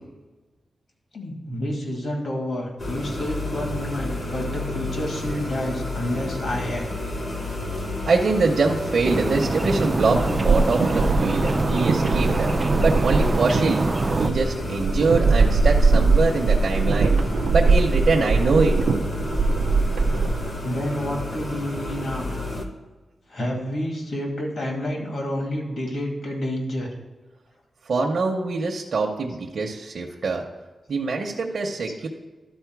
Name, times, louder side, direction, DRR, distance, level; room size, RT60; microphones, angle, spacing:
voice 1, 1.1-6.9 20.6-22.3 23.3-26.9, left 1 dB, 65° left, 0 dB, 2.3 m, -29 dB
sound 1, 2.8-22.6, left 2 dB, 50° left, 1.0 m, -31 dB
voice 2, 8.1-12.5 12.8-13.9 14.2-17.2 17.5-18.8 27.9-30.4 30.9-32.1, right 3 dB, 60° right, -1 dB, 0.8 m, -23 dB
sound 2, 9.0-14.3, right 2 dB, 25° right, 0.3 m, -25 dB
sound 3, 10.0-20.5, right 3 dB, 85° right, 0.5 m, -22 dB
12.0 x 4.3 x 4.7 m, 1.2 s
wide cardioid pair, 135°, 0 cm